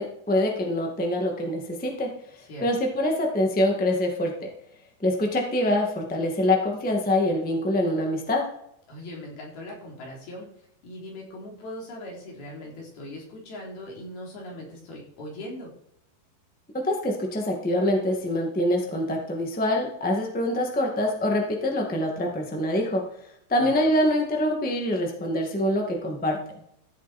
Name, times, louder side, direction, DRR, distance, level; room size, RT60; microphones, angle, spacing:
voice 1, 0.0-2.1 2.6-4.5 5.0-8.5 16.8-23.1 23.5-26.4, left 1 dB, 5° left, 1 dB, 0.9 m, -25 dB
voice 2, 8.9-10.5 10.8-15.7 23.6-23.7, left 1 dB, 90° left, -2 dB, 5.7 m, -40 dB
15.0 x 7.7 x 4.4 m, 0.75 s
omnidirectional pair, 4.2 m